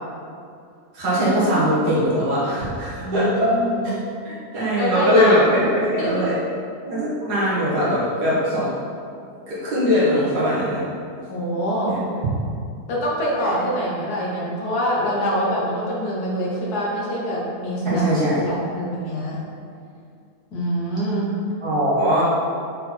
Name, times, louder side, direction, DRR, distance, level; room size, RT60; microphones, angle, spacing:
voice 1, 0.9-3.5 3.8-3.9 4.2-6.4 6.9-8.7 9.5-10.8 11.8-12.0 17.9-18.4 21.6-22.2, equal, 90° right, -9 dB, 2.0 m, -21 dB
voice 2, 3.0-3.9 4.8-5.7 6.0-6.3 11.3-12.0 12.9-18.0 18.4-19.4 20.5-21.4, equal, 75° left, -5 dB, 1.7 m, -25 dB
6.2 x 4.0 x 4.3 m, 2.4 s
omnidirectional pair, 1.7 m